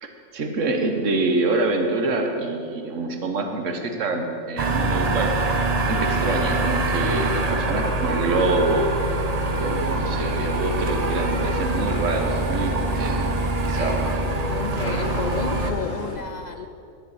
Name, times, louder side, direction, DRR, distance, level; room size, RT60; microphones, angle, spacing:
voice 1, 0.0-5.3 5.8-8.9 9.6-13.3 13.6-14.1, right 2 dB, 75° right, 4 dB, 1.5 m, -26 dB
sound 1, 4.6-15.7, right 2 dB, 35° right, 0.9 m, -24 dB
sound 2, 9.7-16.2, left 1 dB, 40° left, 2.0 m, -36 dB
voice 2, 14.5-16.7, left 5 dB, 70° left, 7 dB, 0.4 m, -32 dB
10.5 x 8.2 x 8.5 m, 2.6 s
omnidirectional pair, 1.3 m